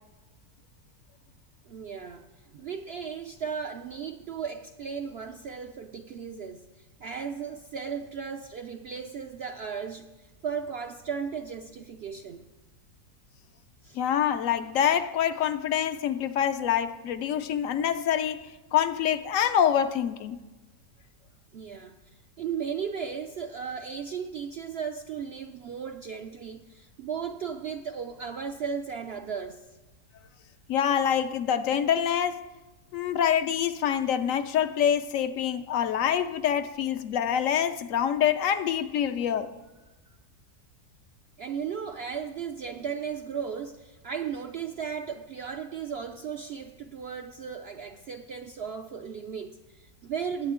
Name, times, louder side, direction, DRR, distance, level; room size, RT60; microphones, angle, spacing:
voice 1, 1.7-2.3 2.5-12.5 13.8-14.0 21.5-29.7 41.4-50.5, right 6 dB, 70° right, 0.6 m, -36 dB
voice 2, 13.9-20.4 30.7-32.4 32.9-39.5, left 9 dB, 70° left, 0.9 m, -26 dB
19.5 x 8.4 x 3.7 m
omnidirectional pair, 1.6 m